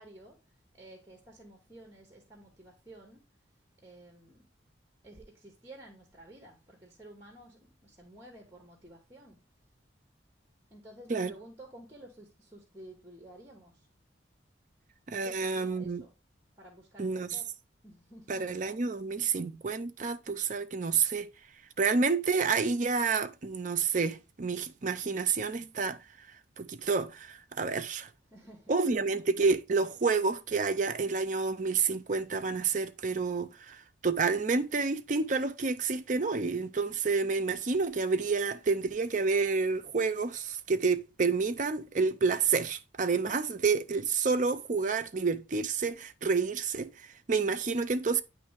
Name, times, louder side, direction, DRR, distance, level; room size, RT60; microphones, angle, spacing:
voice 1, 0.0-3.2 3.8-4.5 5.0-9.4 10.7-13.9 15.2-16.1 16.6-17.5 17.8-18.7 28.3-28.9, right 1 dB, 15° right, 1.1 m, -52 dB
voice 2, 15.1-16.0 17.0-17.3 18.3-21.3 21.8-26.0 26.6-28.1 28.7-48.2, right 4 dB, 40° right, 0.5 m, -29 dB
9.3 x 3.2 x 3.3 m
head